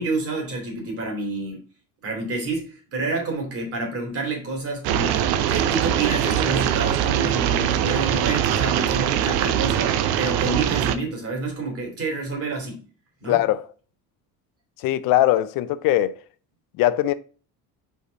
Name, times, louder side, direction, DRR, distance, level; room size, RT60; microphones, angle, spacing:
voice 1, 0.0-1.6 2.0-12.8 13.2-13.4, right 3 dB, 40° right, 2.8 m, -29 dB
sound 1, 4.8-11.0, right 10 dB, 80° right, 0.8 m, -22 dB
voice 2, 13.3-13.6 14.8-16.2 16.8-17.1, left 14 dB, 65° left, 0.6 m, -20 dB
5.2 x 4.8 x 3.9 m
cardioid pair, 145°, 36 cm